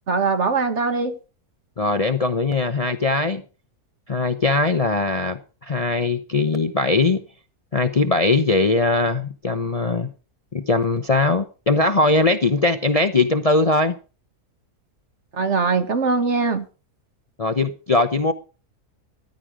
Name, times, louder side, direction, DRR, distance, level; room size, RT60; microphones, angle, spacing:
voice 1, 0.1-1.2 15.3-16.7, right 4 dB, 50° right, 1.6 m, -21 dB
voice 2, 1.8-3.4 4.1-7.2 7.7-10.1 10.5-14.0 17.4-18.3, left 3 dB, 35° left, 0.7 m, -20 dB
14.5 x 11.0 x 5.0 m
omnidirectional pair, 1.6 m